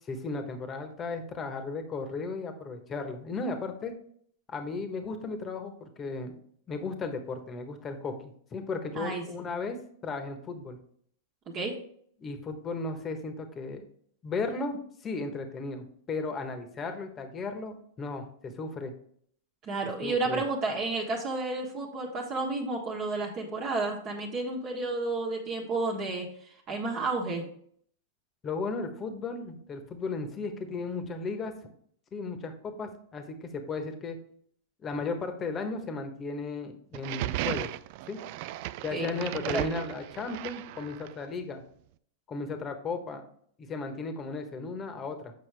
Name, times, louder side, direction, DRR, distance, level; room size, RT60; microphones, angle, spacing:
voice 1, 0.1-3.9 4.5-6.3 6.7-9.8 10.0-10.8 12.2-13.8 14.2-18.9 20.0-20.4 28.4-31.5 32.1-34.2 34.8-37.7 38.1-38.2 38.8-41.6 42.3-43.2 43.6-45.3, left 3 dB, 25° left, 7 dB, 1.2 m, -35 dB
voice 2, 11.5-11.8 19.6-27.5 38.9-39.7, right 3 dB, 40° right, 0 dB, 1.4 m, -31 dB
sound 1, 36.9-41.3, right 15 dB, 55° right, 0.3 m, -36 dB
7.4 x 5.4 x 3.4 m, 0.63 s
hypercardioid pair, 105°, 0 cm